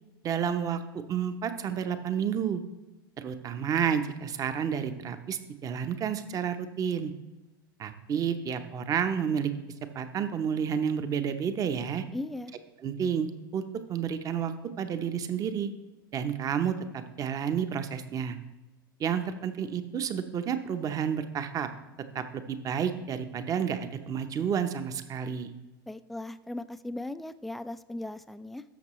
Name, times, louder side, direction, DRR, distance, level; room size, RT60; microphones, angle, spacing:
voice 1, 0.2-0.8 1.1-2.6 3.2-7.1 7.8-9.5 9.9-12.0 12.8-13.6 13.9-15.7 16.1-18.4 19.0-21.7 22.1-25.5, right 7 dB, 30° right, 9 dB, 0.8 m, -30 dB
voice 2, 12.1-12.5 25.9-28.6, left 2 dB, ahead, 12 dB, 0.3 m, -38 dB
13.0 x 5.9 x 3.1 m, 1.1 s
hypercardioid pair, 95°, 12 cm